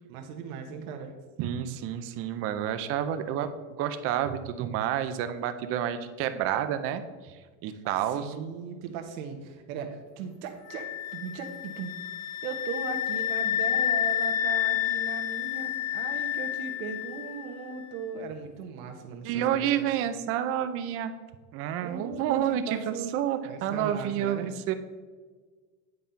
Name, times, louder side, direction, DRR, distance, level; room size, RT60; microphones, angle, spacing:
voice 1, 0.1-1.1 7.7-11.9 12.4-19.9 21.8-23.1 23.4-24.5, right 6 dB, 85° right, 4 dB, 1.3 m, -38 dB
voice 2, 1.4-8.3 19.2-21.1 21.5-24.7, right 10 dB, 35° right, 10 dB, 0.5 m, -29 dB
sound 1, 10.7-17.5, left 11 dB, 40° left, 0.5 m, -30 dB
9.5 x 5.4 x 4.4 m, 1.5 s
cardioid pair, 175°, 40 cm